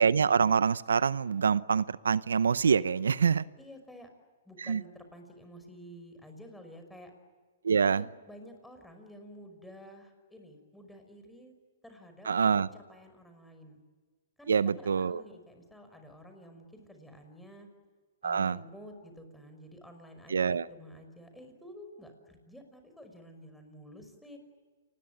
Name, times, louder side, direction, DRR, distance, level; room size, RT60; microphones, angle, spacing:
voice 1, 0.0-3.4 4.6-4.8 7.6-8.1 12.3-12.7 14.5-15.2 18.2-18.6 20.3-20.6, right 6 dB, 85° right, 18 dB, 0.7 m, -25 dB
voice 2, 3.6-4.1 4.5-7.1 7.8-11.5 11.8-12.3 12.7-13.8 14.4-17.7 18.2-24.4, equal, 5° left, 5 dB, 5.6 m, -51 dB
29.0 x 20.5 x 9.1 m, 1.5 s
hypercardioid pair, 135°, 0 cm